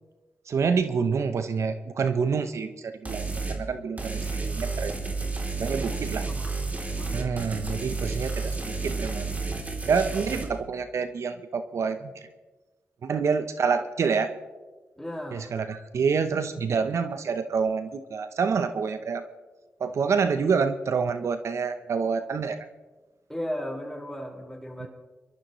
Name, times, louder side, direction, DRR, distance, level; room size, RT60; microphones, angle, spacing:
voice 1, 0.5-5.0 5.6-6.3 7.1-9.3 9.9-12.3 13.0-14.3 15.3-19.2 19.8-22.7 24.8-24.9, right 5 dB, 70° right, 9 dB, 0.8 m, -27 dB
sound 1, 3.1-3.6 4.0-10.4, right 3 dB, 30° right, 3.1 m, -31 dB
voice 2, 7.0-7.4 15.0-15.5 23.3-24.9, equal, 5° left, -1 dB, 4.9 m, -36 dB
25.0 x 13.0 x 3.1 m, 1.3 s
cardioid pair, 60°, 5 cm